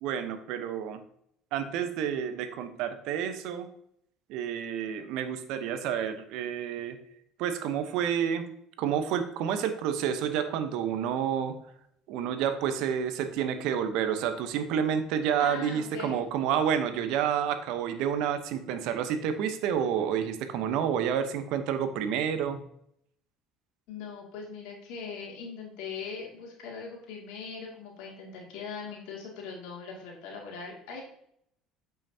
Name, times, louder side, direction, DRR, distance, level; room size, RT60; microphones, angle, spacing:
voice 1, 0.0-1.0 1.5-3.7 4.3-7.0 7.4-8.4 8.8-11.5 12.1-22.6, right 8 dB, 70° right, 10 dB, 0.8 m, -29 dB
voice 2, 15.4-16.2 23.9-31.0, left 5 dB, 75° left, -1 dB, 2.3 m, -40 dB
8.4 x 5.8 x 2.8 m, 0.72 s
hypercardioid pair, 70°, 0 cm